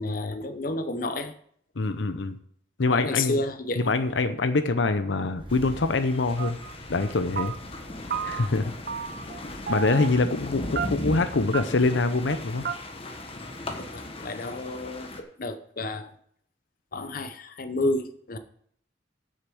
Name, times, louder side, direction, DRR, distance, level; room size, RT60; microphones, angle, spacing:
voice 1, 0.0-1.3 2.8-3.9 8.5-8.6 13.8-16.1 16.9-18.4, left 2 dB, 50° left, 9 dB, 0.8 m, -31 dB
voice 2, 1.8-2.4 2.8-3.4 3.8-6.6 6.9-7.5 8.2-8.7 9.7-12.6, left 3 dB, 80° left, 9 dB, 0.7 m, -24 dB
Engine starting, 5.4-10.9, equal, 25° right, 1.3 m, -48 dB
sound 1, 5.5-15.2, left 1 dB, 30° left, 1.2 m, -38 dB
sound 2, 6.4-6.7 7.0-7.8 8.1-8.6 8.9-9.4 9.7-10.2 10.8-11.2 11.5-11.6 11.9-12.0 12.3-12.4 12.6-12.8, right 8 dB, 55° right, 0.6 m, -32 dB
8.0 x 6.5 x 7.7 m, 0.63 s
head